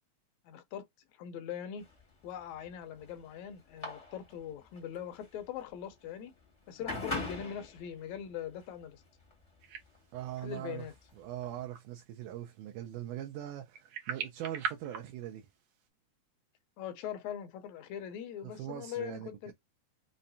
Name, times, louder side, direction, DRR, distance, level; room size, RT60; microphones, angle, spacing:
voice 1, 0.5-0.9 1.1-1.9 2.2-6.3 6.7-9.0 10.4-10.9 16.8-19.5, left 9 dB, 75° left, 1.8 m, -41 dB
sound 1, 1.8-11.6, left 2 dB, 35° left, 0.5 m, -44 dB
sound 2, 9.6-15.9, right 7 dB, 70° right, 1.6 m, -43 dB
voice 2, 10.1-10.9 11.2-15.5 18.4-19.5, right 12 dB, 85° right, 2.2 m, -41 dB
5.5 x 2.1 x 2.6 m
omnidirectional pair, 3.5 m